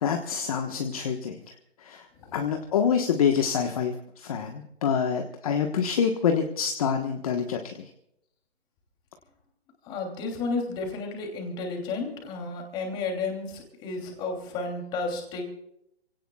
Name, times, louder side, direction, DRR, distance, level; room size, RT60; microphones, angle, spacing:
voice 1, 0.0-2.1 2.3-7.9, left 7 dB, 30° left, 4 dB, 1.3 m, -27 dB
voice 2, 9.8-15.4, left 3 dB, 15° left, 2 dB, 3.0 m, -32 dB
28.0 x 17.5 x 2.4 m, 0.79 s
hypercardioid pair, 165°, 34 cm